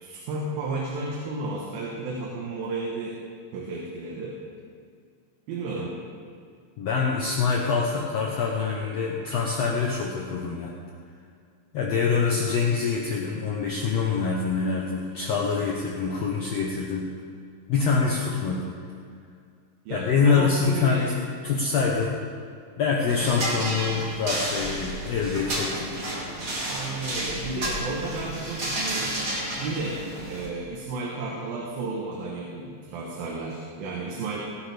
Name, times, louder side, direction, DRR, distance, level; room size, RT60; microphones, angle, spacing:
voice 1, 0.0-3.2 3.5-4.4 5.5-6.0 19.9-21.1 26.7-29.2 29.6-34.5, right 3 dB, 80° right, -2 dB, 3.0 m, -33 dB
voice 2, 6.8-10.7 11.7-17.1 17.7-18.7 19.9-21.2 21.4-22.1 22.8-25.9, left 5 dB, 75° left, -1 dB, 1.5 m, -25 dB
sound 1, 23.1-30.5, right 1 dB, 30° right, 1.8 m, -31 dB
18.0 x 10.5 x 3.4 m, 2.2 s
omnidirectional pair, 4.2 m